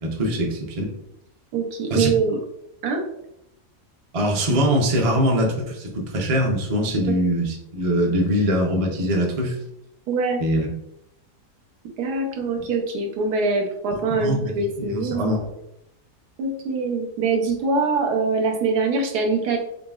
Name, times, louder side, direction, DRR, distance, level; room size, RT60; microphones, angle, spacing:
voice 1, 0.0-0.9 1.9-2.1 4.1-9.6 10.4-10.7 14.1-15.5, equal, 40° right, 0 dB, 0.4 m, -22 dB
voice 2, 1.5-2.4 2.8-3.0 7.1-7.2 10.1-10.4 12.0-15.3 16.4-19.6, right 4 dB, 80° right, 2 dB, 1.3 m, -23 dB
3.9 x 3.8 x 2.3 m, 0.81 s
omnidirectional pair, 1.7 m